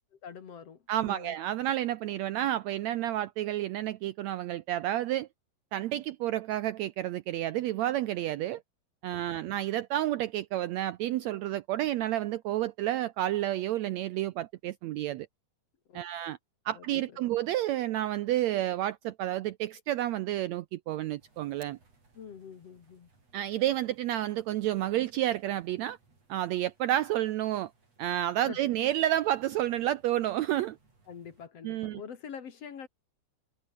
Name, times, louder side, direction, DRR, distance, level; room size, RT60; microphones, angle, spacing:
voice 1, 0.0-1.4 9.3-9.5 15.9-16.0 16.7-17.3 22.1-23.1 28.5-28.6 31.1-32.9, left 7 dB, 55° left, 2.8 m, -46 dB
voice 2, 0.9-5.3 5.7-8.6 9.0-15.3 15.9-16.4 16.6-21.8 23.3-26.0 26.3-27.7 28.0-30.8 31.6-32.0, right 13 dB, 75° right, 1.7 m, -30 dB
sound 1, 21.2-31.5, right 3 dB, 50° right, 8.0 m, -65 dB
omnidirectional pair, 3.7 m